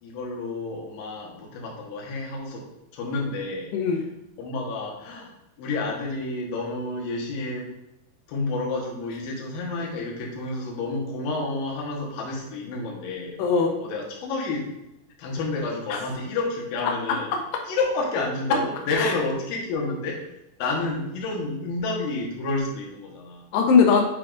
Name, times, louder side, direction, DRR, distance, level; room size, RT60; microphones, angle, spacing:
voice 1, 0.0-2.7 2.9-3.7 4.4-5.3 5.6-7.7 8.3-13.4 13.8-14.7 15.2-17.3 17.7-20.2 20.6-23.5, left 3 dB, 70° left, -2 dB, 2.8 m, -30 dB
voice 2, 3.7-4.1 13.4-13.8 15.9-16.0 17.1-17.4 18.5-18.6 19.0-19.1 23.5-24.0, left 5 dB, 85° left, 2 dB, 2.9 m, -20 dB
8.2 x 4.8 x 2.5 m, 0.89 s
omnidirectional pair, 4.8 m